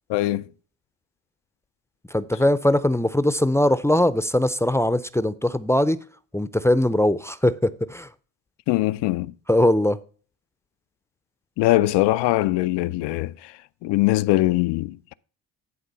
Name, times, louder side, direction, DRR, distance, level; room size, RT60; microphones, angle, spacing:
voice 1, 0.1-0.5 8.7-9.3 11.6-13.5 13.8-15.1, left 17 dB, 80° left, 0.5 m, -22 dB
voice 2, 2.1-6.0 6.3-8.1 9.5-10.0, left 1 dB, 5° left, 0.5 m, -21 dB
11.0 x 3.8 x 5.5 m
supercardioid pair, 65°, 42 cm